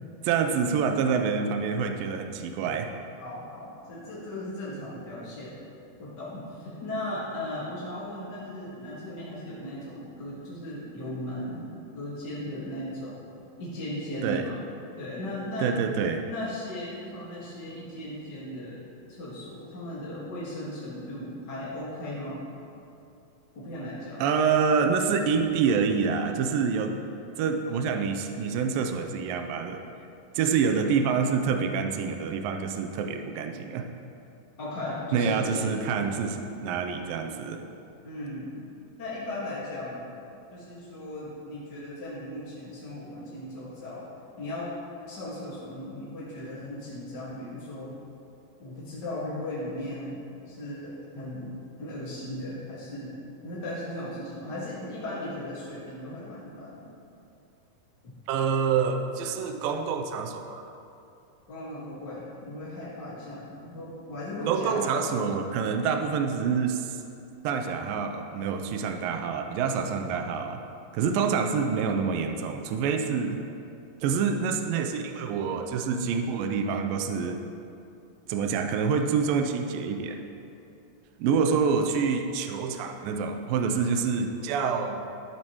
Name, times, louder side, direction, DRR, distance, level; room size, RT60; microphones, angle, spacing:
voice 1, 0.2-2.9 14.2-14.5 15.6-16.2 24.2-27.0 27.4-29.8 30.3-33.9 35.1-37.6 58.3-60.7 64.5-67.0 67.4-70.6 70.9-73.4 74.0-77.4 78.3-80.2 81.2-85.0, right 6 dB, 85° right, 5 dB, 2.1 m, -27 dB
voice 2, 3.2-5.6 6.0-11.7 11.9-13.2 13.6-14.6 15.0-15.7 16.2-18.8 19.1-22.4 23.5-24.2 34.6-35.7 38.0-38.6 39.0-40.1 40.5-44.0 44.4-44.7 45.1-47.9 48.6-56.9 58.0-58.1 61.5-65.1, left 1 dB, 40° left, -8 dB, 1.5 m, -37 dB
13.0 x 12.0 x 3.1 m, 2.7 s
omnidirectional pair, 4.6 m